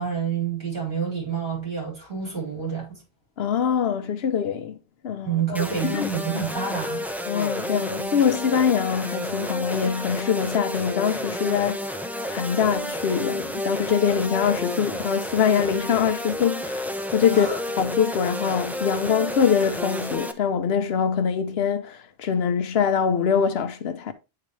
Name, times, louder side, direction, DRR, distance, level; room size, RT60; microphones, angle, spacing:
voice 1, 0.0-3.0 5.2-7.1 17.3-17.6, right 6 dB, 55° right, 4.5 m, -28 dB
voice 2, 3.4-4.8 5.0-6.1 7.3-12.0 12.2-24.1, left 7 dB, 75° left, 0.9 m, -24 dB
sound 1, 5.5-20.3, left 1 dB, ahead, 0.4 m, -31 dB
9.4 x 3.9 x 3.1 m
omnidirectional pair, 1.1 m